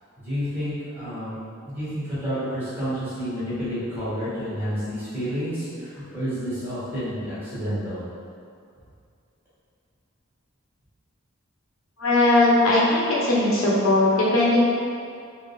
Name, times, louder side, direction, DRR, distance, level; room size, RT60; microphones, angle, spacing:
voice 1, 0.2-1.4 1.6-8.0, equal, 10° right, -13 dB, 1.5 m, -30 dB
voice 2, 12.0-14.6, left 2 dB, 85° left, -5 dB, 0.8 m, -19 dB
3.4 x 2.7 x 3.3 m, 2.4 s
head